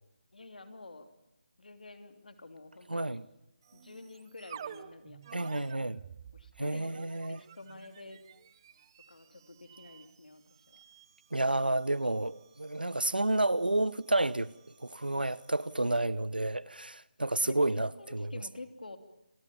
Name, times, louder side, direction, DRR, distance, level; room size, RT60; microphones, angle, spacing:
voice 1, 0.3-1.0 1.6-3.2 3.7-5.7 6.3-8.2 9.1-10.8 17.3-19.0, left 2 dB, 65° left, 3.2 m, -49 dB
voice 2, 2.9-3.2 5.3-6.0 6.6-7.4 11.3-14.5 14.8-18.3, right 2 dB, 85° right, 0.9 m, -30 dB
sound 1, 3.6-16.1, right 9 dB, 25° right, 0.9 m, -53 dB
29.5 x 21.5 x 7.1 m
figure-of-eight pair, 155°, 5 cm